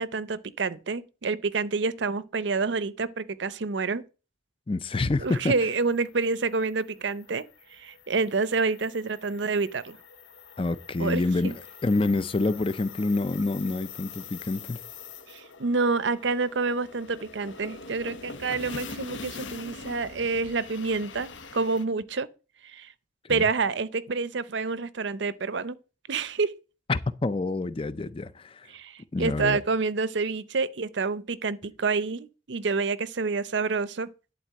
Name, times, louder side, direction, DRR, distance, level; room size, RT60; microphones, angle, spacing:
voice 1, 0.0-4.0 5.2-7.4 7.7-10.0 11.0-11.5 15.3-22.3 22.6-22.9 23.3-25.8 26.1-26.5 28.7-34.1, right 4 dB, 70° right, 0.6 m, -28 dB
voice 2, 4.7-5.5 10.6-11.5 11.8-14.8 23.2-23.5 26.9-28.7 29.1-29.6, left 2 dB, 30° left, 0.4 m, -27 dB
sound 1, 5.4-21.8, left 4 dB, 80° left, 1.0 m, -44 dB
11.0 x 4.2 x 7.5 m
head